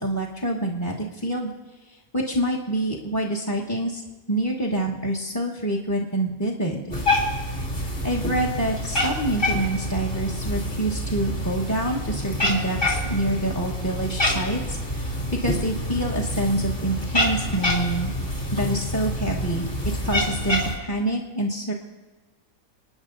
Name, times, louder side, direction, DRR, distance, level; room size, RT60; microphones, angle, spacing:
voice 1, 0.0-1.5 2.1-4.0 4.3-6.8 8.0-15.1 15.4-18.1 18.5-19.7 20.0-21.7, right 1 dB, 15° left, 0 dB, 1.1 m, -26 dB
Cat, 6.9-20.8, left 1 dB, 40° left, 2.8 m, -27 dB
28.0 x 9.6 x 3.9 m, 1.2 s
omnidirectional pair, 1.5 m